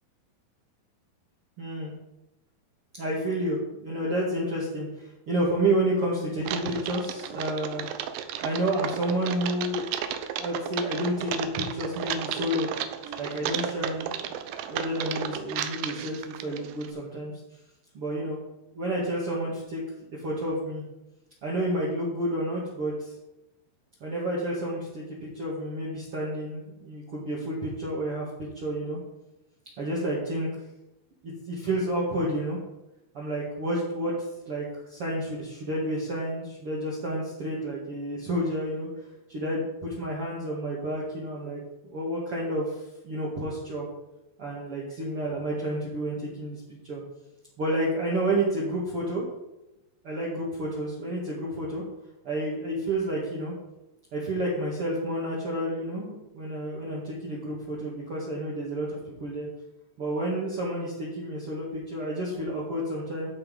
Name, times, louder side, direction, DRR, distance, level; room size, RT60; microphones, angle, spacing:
voice 1, 1.6-1.9 3.0-7.8 8.4-9.9 10.3-12.7 13.2-14.1 14.7-17.3 17.9-18.4 18.7-19.8 20.2-20.8 21.4-23.1 24.0-29.0 29.8-30.5 31.2-32.6 33.1-34.1 34.5-38.9 39.3-41.6 41.9-42.8 43.0-43.9 44.4-46.6 46.9-47.0 47.6-49.2 50.0-51.8 52.2-53.5 54.1-59.5 60.0-63.3, right 1 dB, 45° right, -5 dB, 2.3 m, -30 dB
Typing, 6.4-16.9, right 9 dB, 80° right, 2.3 m, -34 dB
14.0 x 5.7 x 5.4 m, 0.93 s
omnidirectional pair, 4.7 m